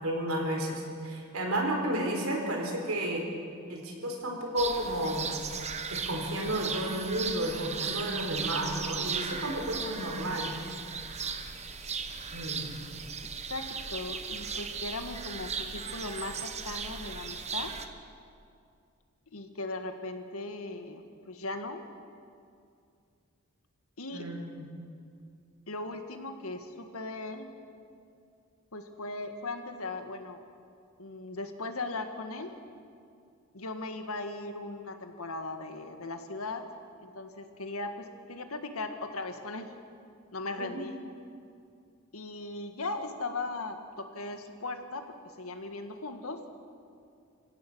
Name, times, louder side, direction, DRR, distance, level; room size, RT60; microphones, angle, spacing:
voice 1, 0.0-3.2 3.7-5.3 5.9-10.6 12.3-12.8 24.1-24.6 40.6-40.8, right 1 dB, 75° right, 1 dB, 4.4 m, -32 dB
sound 1, 4.6-17.9, right 5 dB, 30° right, 1.2 m, -37 dB
voice 2, 13.5-17.7 19.3-21.8 24.0-24.3 25.7-27.5 28.7-30.4 31.0-32.5 33.5-36.6 37.0-39.7 40.3-40.9 42.1-45.0 45.4-46.4, left 2 dB, 85° left, 6 dB, 1.9 m, -38 dB
27.5 x 16.0 x 6.3 m, 2.4 s
head